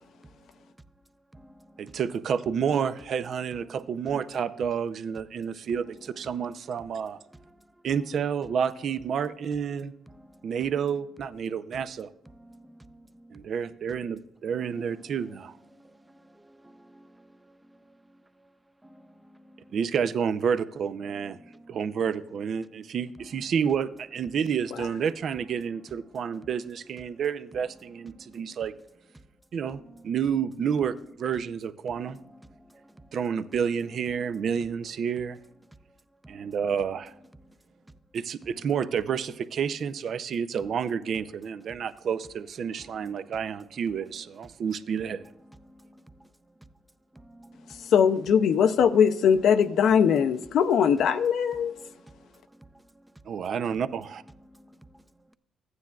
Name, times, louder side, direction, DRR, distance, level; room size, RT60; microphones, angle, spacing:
voice 1, 0.1-0.7 1.3-2.0 7.3-7.7 10.1-10.6 12.3-13.4 14.5-15.0 15.7-18.2 18.8-19.8 21.4-21.8 28.1-28.6 29.9-30.0 31.9-33.2 34.2-34.5 36.2-36.6 37.4-37.6 42.8-43.4 45.4-46.3 47.1-47.9 51.5-52.7 52.9-53.1 54.5-55.0, right 1 dB, 10° right, 0.5 m, -54 dB
voice 2, 1.8-7.2 7.8-9.9 10.4-12.1 13.3-15.5 19.7-21.4 21.7-28.7 29.5-32.2 33.1-35.4 36.3-37.1 38.1-45.2 53.3-54.2, right 7 dB, 60° right, 0.5 m, -29 dB
voice 3, 47.9-51.7, left 7 dB, 75° left, 0.5 m, -21 dB
15.0 x 9.5 x 2.3 m
cardioid pair, 90°, 0 cm